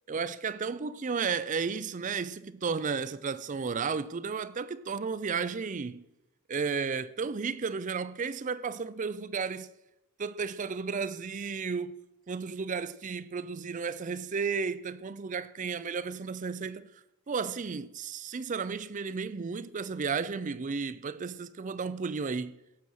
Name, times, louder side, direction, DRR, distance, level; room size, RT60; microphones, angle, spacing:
voice 1, 0.1-6.0 6.5-9.7 10.2-12.0 12.3-16.9 17.3-22.5, right 5 dB, 35° right, 0.4 m, -33 dB
16.0 x 6.3 x 7.8 m
head